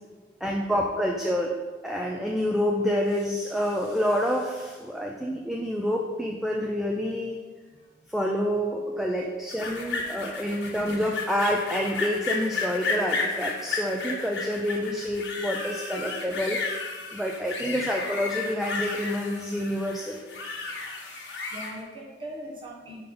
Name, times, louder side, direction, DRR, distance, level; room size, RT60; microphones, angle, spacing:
voice 1, 0.4-1.5 1.8-7.4 8.1-20.2, equal, ahead, -1 dB, 0.4 m, -28 dB
sound 1, 9.5-21.7, left 4 dB, 80° left, 1.1 m, -33 dB
voice 2, 20.7-23.0, equal, 30° right, -3 dB, 1.2 m, -42 dB
5.6 x 5.2 x 3.8 m, 1.4 s
head